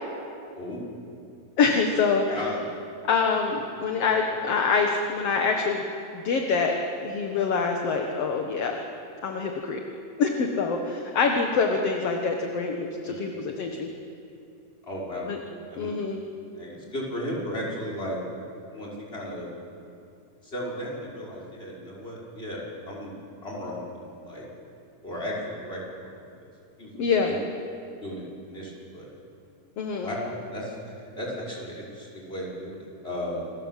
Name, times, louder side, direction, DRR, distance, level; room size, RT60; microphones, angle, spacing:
voice 1, 1.6-2.4 3.1-5.8 6.1-8.8 9.2-9.8 10.2-13.9 15.3-15.4 15.8-16.2 27.0-27.3 29.8-30.1, left 5 dB, 60° left, 2 dB, 2.4 m, -25 dB
voice 2, 2.3-2.6 13.0-13.4 14.8-15.3 15.7-16.0 16.5-18.2 18.7-19.5 20.4-23.1 23.4-24.5 25.0-26.5 26.8-27.4 28.0-29.1 30.0-33.5, left 1 dB, 20° left, -3 dB, 5.7 m, -35 dB
28.5 x 21.5 x 7.5 m, 2.6 s
omnidirectional pair, 3.4 m